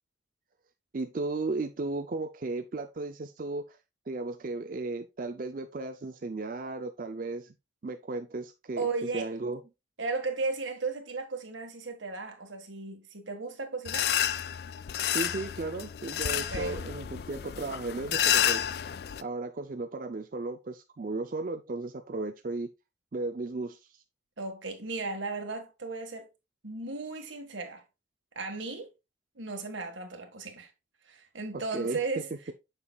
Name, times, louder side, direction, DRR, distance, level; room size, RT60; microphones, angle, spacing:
voice 1, 0.9-3.8 4.1-7.5 7.8-8.9 9.1-9.6 15.1-18.7 19.2-22.7 23.1-24.0 31.7-32.0, right 3 dB, 45° right, 0.4 m, -35 dB
voice 2, 8.8-9.3 10.0-14.1 16.3-16.8 24.4-26.3 26.6-27.8 28.4-28.9 29.4-30.7 31.1-32.5, right 3 dB, 85° right, 1.6 m, -35 dB
sound 1, 13.8-19.2, left 10 dB, 55° left, 0.3 m, -30 dB
7.0 x 6.8 x 2.3 m
head